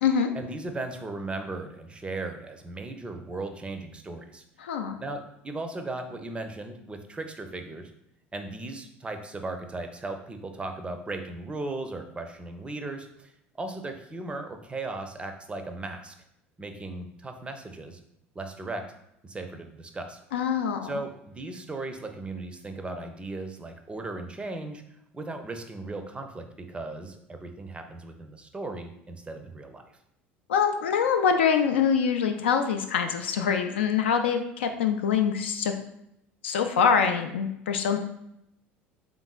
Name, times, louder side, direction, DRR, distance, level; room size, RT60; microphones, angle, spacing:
voice 1, 0.3-4.4 5.0-7.9 8.3-13.3 13.6-16.1 16.6-18.0 18.3-18.8 19.2-20.2 20.8-24.8 25.1-29.8, right 2 dB, 15° right, 6 dB, 0.5 m, -37 dB
voice 2, 4.6-5.0 20.3-20.9 30.5-35.7 36.4-38.0, left 7 dB, 70° left, 6 dB, 0.3 m, -24 dB
3.8 x 3.5 x 2.2 m, 0.79 s
figure-of-eight pair, 65°, 6 cm